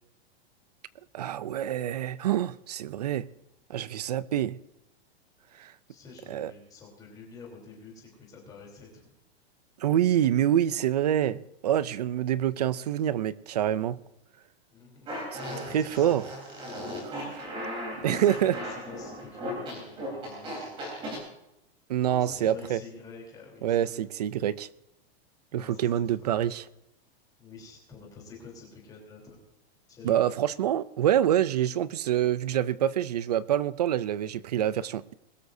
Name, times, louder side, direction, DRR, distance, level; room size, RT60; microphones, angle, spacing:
voice 1, 1.1-3.3 3.7-4.6 5.6-5.7 6.3-6.5 9.8-14.0 15.3-15.4 15.7-16.3 17.0-17.5 18.0-18.6 21.9-22.8 23.6-24.7 25.5-26.6 30.0-35.1, right 11 dB, 40° right, 0.4 m, -26 dB
voice 2, 5.9-9.1 14.7-15.1 15.4-16.1 17.1-17.5 17.9-21.2 22.0-24.0 25.5-26.2 27.4-29.4 29.9-30.3, left 4 dB, 10° left, 3.4 m, -48 dB
Fart, 15.1-21.2, equal, 15° right, 3.8 m, -37 dB
21.5 x 13.0 x 2.7 m
supercardioid pair, 175°, 32 cm